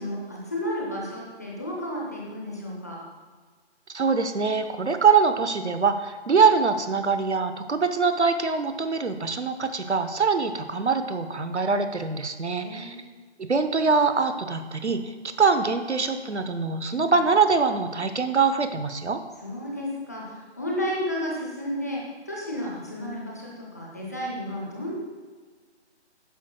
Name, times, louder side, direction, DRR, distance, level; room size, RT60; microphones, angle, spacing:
voice 1, 0.0-3.0 12.6-13.0 16.9-17.2 19.4-22.0 22.3-24.9, equal, 15° left, -3 dB, 0.7 m, -32 dB
voice 2, 3.9-13.0 13.4-19.2, right 5 dB, 75° right, 9 dB, 1.0 m, -23 dB
12.5 x 9.4 x 2.3 m, 1.5 s
figure-of-eight pair, 160°, 34 cm